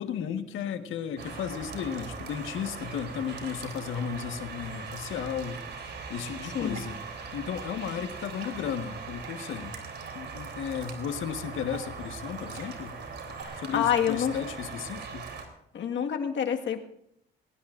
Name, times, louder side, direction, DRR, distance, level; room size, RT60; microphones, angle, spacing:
voice 1, 0.0-5.6 6.1-7.0 7.3-9.7 10.1-12.9 13.6-15.3, left 8 dB, 80° left, 7 dB, 1.5 m, -34 dB
sound 1, 1.2-15.5, right 5 dB, 60° right, 3.4 m, -40 dB
Water / Drip, 6.4-13.4, right 6 dB, 85° right, 2.2 m, -51 dB
voice 2, 6.5-6.8 13.4-14.4 15.7-16.8, left 9 dB, 65° left, 4 dB, 1.7 m, -28 dB
21.5 x 18.5 x 2.6 m, 0.76 s
cardioid pair, 90°, 20 cm